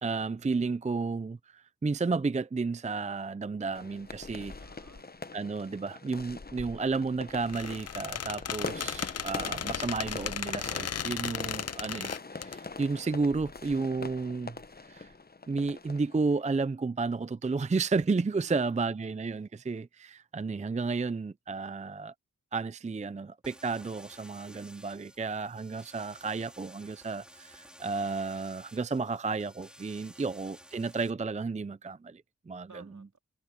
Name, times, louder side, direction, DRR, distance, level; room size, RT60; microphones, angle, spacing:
voice 1, 0.0-4.6 5.3-14.6 14.9-15.1 15.5-22.1 22.5-32.7, right 4 dB, 20° right, 0.5 m, -32 dB
sound 1, 3.7-16.6, left 3 dB, 30° left, 0.9 m, -43 dB
voice 2, 4.6-5.1 18.3-19.2 30.1-30.4 32.7-33.2, right 4 dB, 65° right, 3.2 m, -56 dB
Squeak, 7.4-12.6, left 8 dB, 50° left, 0.6 m, -36 dB
sound 2, 23.4-31.1, equal, 5° right, 3.8 m, -54 dB
cardioid pair, 50°, 32 cm